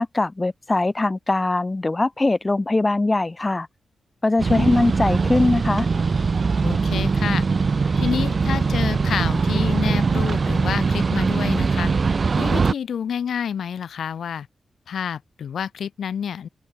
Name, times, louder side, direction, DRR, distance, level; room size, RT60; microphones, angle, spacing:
voice 1, 0.0-3.7 4.2-5.9, left 2 dB, 20° left, 0.9 m, -21 dB
sound 1, 4.4-12.7, right 4 dB, 40° right, 0.9 m, -21 dB
voice 2, 4.5-4.9 6.6-7.4 8.0-11.9 12.3-14.5 14.9-16.5, left 8 dB, 85° left, 2.2 m, -28 dB
open air
wide cardioid pair, 115°, 0 cm